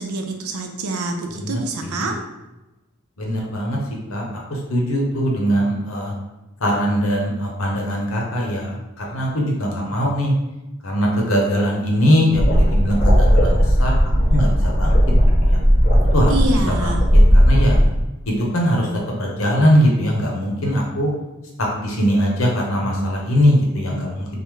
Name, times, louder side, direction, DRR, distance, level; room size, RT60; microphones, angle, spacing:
voice 1, 0.0-2.1 16.3-17.0, right 2 dB, 85° right, 4 dB, 0.5 m, -26 dB
voice 2, 1.4-2.1 3.2-3.8 4.1-6.1 6.6-10.3 10.8-13.9 14.3-15.0 15.4-15.6 16.1-17.8 18.3-18.9 19.2-21.1 21.6-24.4, equal, 70° left, -1 dB, 0.8 m, -21 dB
sound 1, 12.3-17.9, equal, 35° left, 0.7 m, -15 dB
3.4 x 2.1 x 3.1 m, 1.0 s
head